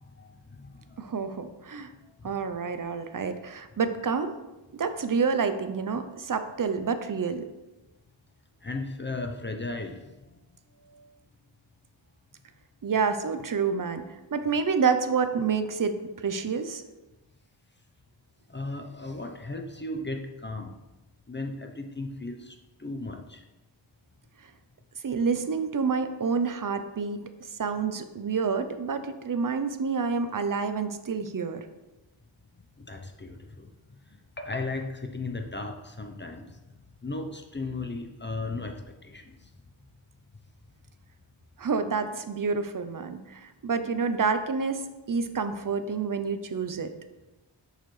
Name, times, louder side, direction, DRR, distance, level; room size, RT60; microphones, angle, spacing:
voice 1, 0.0-1.1 2.2-2.4 6.3-6.8 8.6-10.4 10.8-11.1 18.5-20.7 21.3-23.4 32.8-33.7 34.4-36.4 37.0-39.3, left 2 dB, 25° left, 4 dB, 0.7 m, -36 dB
voice 2, 1.0-1.9 2.2-4.3 4.8-7.5 12.8-16.0 16.2-16.8 25.0-27.3 27.6-31.6 41.6-46.9, right 5 dB, 45° right, 9 dB, 0.6 m, -28 dB
6.6 x 6.5 x 3.2 m, 1.1 s
wide cardioid pair, 80°, 47 cm